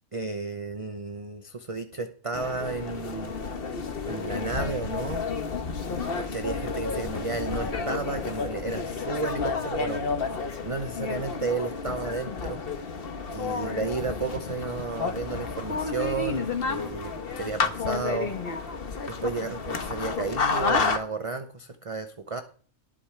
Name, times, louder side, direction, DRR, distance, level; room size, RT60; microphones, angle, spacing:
voice 1, 0.1-3.4 4.0-5.2 6.2-10.0 10.6-12.6 13.3-18.4 19.1-22.4, right 4 dB, 30° right, 8 dB, 0.8 m, -33 dB
sound 1, 2.3-21.0, left 4 dB, 50° left, 1.3 m, -31 dB
19.0 x 8.8 x 3.4 m, 0.44 s
omnidirectional pair, 1.3 m